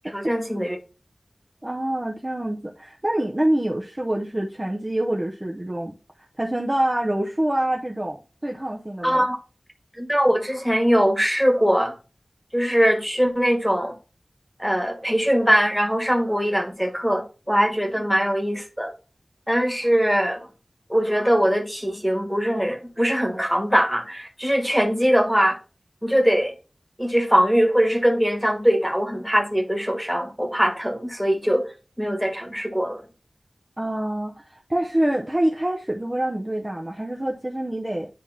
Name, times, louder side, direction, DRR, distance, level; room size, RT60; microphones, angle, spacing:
voice 1, 0.1-0.8 9.0-9.4 9.9-11.9 12.5-13.9 14.6-18.9 19.5-20.5 20.9-25.6 26.0-26.5 27.0-31.6 32.0-33.0, equal, ahead, 1.4 m, -21 dB
voice 2, 1.6-5.9 6.4-9.3 18.0-18.1 33.8-38.1, right 1 dB, 25° right, 0.7 m, -26 dB
10.0 x 3.4 x 2.8 m
wide cardioid pair, 65°, 0 cm